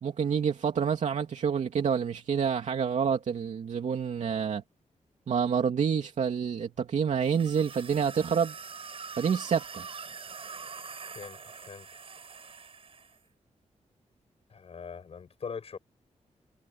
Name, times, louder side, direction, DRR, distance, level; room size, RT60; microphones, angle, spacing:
voice 1, 0.0-4.6 5.3-8.5 9.2-9.9, right 7 dB, 70° right, 2.8 m, -28 dB
sound 1, 7.2-13.2, right 5 dB, 50° right, 7.4 m, -44 dB
voice 2, 11.0-12.0 14.5-15.8, left 6 dB, 55° left, 6.0 m, -42 dB
wide cardioid pair, 145°, 12 cm